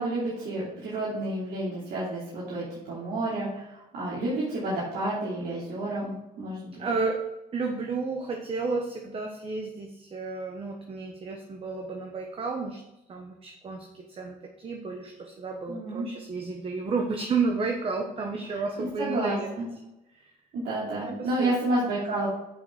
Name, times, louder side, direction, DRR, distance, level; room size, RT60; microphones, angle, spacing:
voice 1, 0.0-6.7 15.7-16.1 18.8-19.6 20.5-22.3, right 1 dB, 75° right, -7 dB, 3.0 m, -30 dB
voice 2, 6.8-7.2 7.5-12.8 13.1-19.5 20.2-20.3 21.0-21.5, right 4 dB, 35° right, 2 dB, 1.1 m, -32 dB
7.2 x 5.6 x 5.7 m, 0.92 s
cardioid pair, 110°, 17 cm